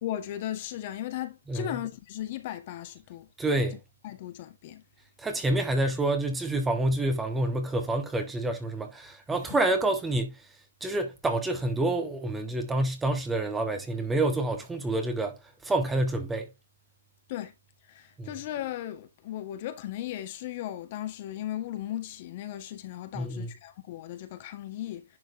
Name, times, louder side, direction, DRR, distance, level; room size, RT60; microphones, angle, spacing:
voice 1, 0.0-3.3 4.0-4.8 17.3-17.5 17.9-25.0, left 12 dB, 40° left, 1.6 m, -36 dB
voice 2, 1.5-1.8 3.4-3.8 5.2-10.4 10.8-16.5 18.2-18.4 23.1-23.5, right 2 dB, 10° right, 1.4 m, -28 dB
11.0 x 4.5 x 2.8 m
hypercardioid pair, 140°, 0 cm